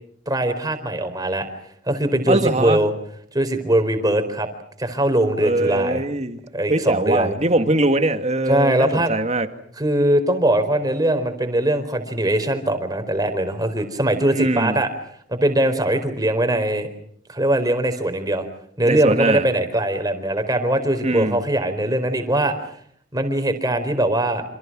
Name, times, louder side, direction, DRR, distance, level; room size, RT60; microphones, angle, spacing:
voice 1, 0.3-1.5 1.9-2.9 3.3-4.5 4.8-6.0 6.5-7.3 8.5-9.1 9.8-14.9 15.3-16.9 17.3-18.5 18.8-22.5 23.1-24.4, right 1 dB, 20° right, 7 dB, 4.4 m, -21 dB
voice 2, 2.3-2.8 5.4-6.4 6.7-9.5 14.3-14.8 18.8-19.5 21.0-21.4, right 2 dB, 35° right, 8 dB, 2.1 m, -21 dB
28.5 x 27.5 x 6.2 m, 0.64 s
head